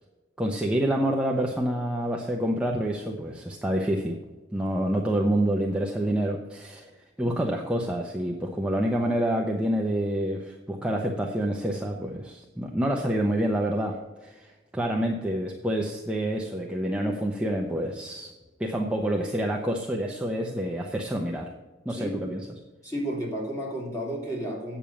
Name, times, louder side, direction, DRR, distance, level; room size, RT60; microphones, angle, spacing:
voice 1, 0.4-4.2 4.5-6.9 7.2-18.3 18.6-21.5 21.8-22.4, right 1 dB, 5° right, -1 dB, 0.8 m, -27 dB
voice 2, 22.8-24.8, equal, 20° left, -3 dB, 3.3 m, -32 dB
9.0 x 6.9 x 7.1 m, 1.2 s
head